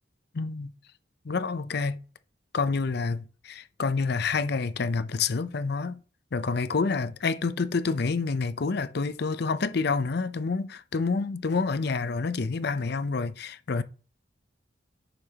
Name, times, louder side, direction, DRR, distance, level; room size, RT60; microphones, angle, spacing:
voice 1, 0.3-0.7 1.2-2.0 2.5-6.0 6.3-13.8, left 4 dB, 60° left, 0.6 m, -28 dB
10.0 x 6.8 x 2.9 m
head